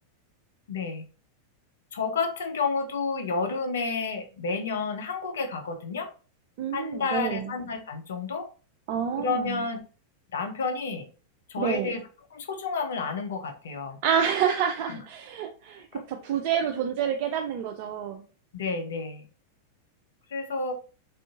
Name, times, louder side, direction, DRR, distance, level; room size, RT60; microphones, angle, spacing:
voice 1, 0.7-1.1 1.9-6.1 6.7-8.5 9.2-9.8 10.3-11.1 11.5-12.0 12.3-14.0 14.9-15.0 15.9-16.0 18.5-19.2 20.3-20.7, left 4 dB, 65° left, 0.5 m, -30 dB
voice 2, 6.6-7.5 8.9-9.6 11.6-11.9 14.0-18.2, right 8 dB, 45° right, 0.3 m, -28 dB
3.7 x 2.4 x 2.4 m
figure-of-eight pair, 90°, 0 cm